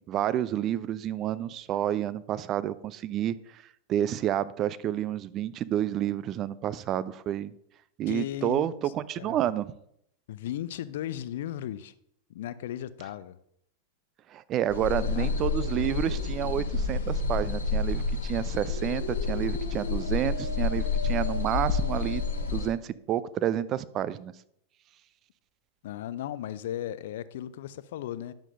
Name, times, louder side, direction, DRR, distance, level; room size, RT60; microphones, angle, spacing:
voice 1, 0.0-3.6 3.9-7.5 8.0-9.7 14.3-22.2 22.5-24.3, right 11 dB, 35° right, 0.4 m, -30 dB
voice 2, 8.1-9.4 10.3-11.9 12.3-13.4 15.0-15.4 25.8-28.3, left 12 dB, 55° left, 0.4 m, -36 dB
sound 1, 14.7-22.7, left 4 dB, 70° left, 1.3 m, -29 dB
10.0 x 7.3 x 2.6 m
figure-of-eight pair, 90°, 0 cm